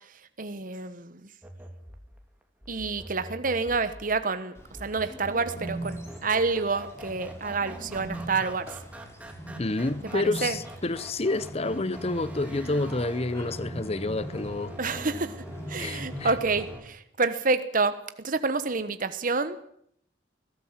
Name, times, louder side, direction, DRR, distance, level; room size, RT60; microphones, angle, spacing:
voice 1, 0.4-1.2 2.7-8.8 10.1-10.6 14.8-15.4 15.7-19.6, right 4 dB, 50° right, 1.2 m, -28 dB
sound 1, 1.4-16.8, right 1 dB, 10° right, 2.9 m, -44 dB
Bird, 4.5-16.7, right 1 dB, 15° left, 4.9 m, -41 dB
voice 2, 9.6-14.7 15.8-16.3, left 2 dB, 35° left, 0.9 m, -29 dB
22.5 x 16.5 x 7.4 m
head